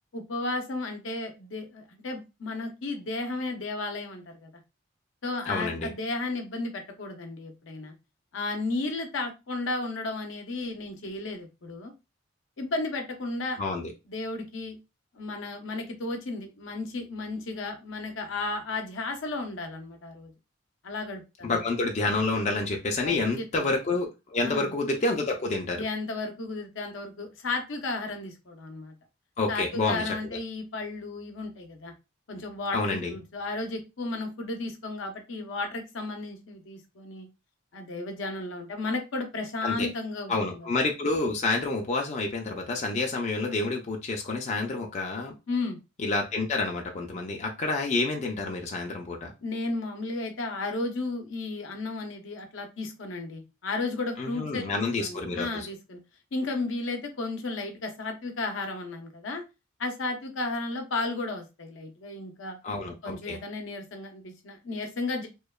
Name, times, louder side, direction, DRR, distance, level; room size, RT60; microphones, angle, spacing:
voice 1, 0.1-4.5 5.2-7.9 8.3-11.9 12.6-13.6 14.1-14.8 15.1-20.3 20.8-21.6 23.0-23.7 24.4-24.7 25.8-28.9 29.5-31.9 32.3-37.3 37.7-40.7 45.5-45.8 49.4-56.0 56.3-59.4 59.8-62.6 63.0-65.3, left 2 dB, 75° left, 5 dB, 0.6 m, -34 dB
voice 2, 5.5-5.9 13.6-13.9 21.4-25.8 29.4-30.2 32.7-33.2 39.6-39.9 40.3-45.3 46.0-49.3 54.2-55.7 62.6-63.4, left 3 dB, 35° left, 2 dB, 0.4 m, -28 dB
2.9 x 2.1 x 2.2 m, 0.26 s
head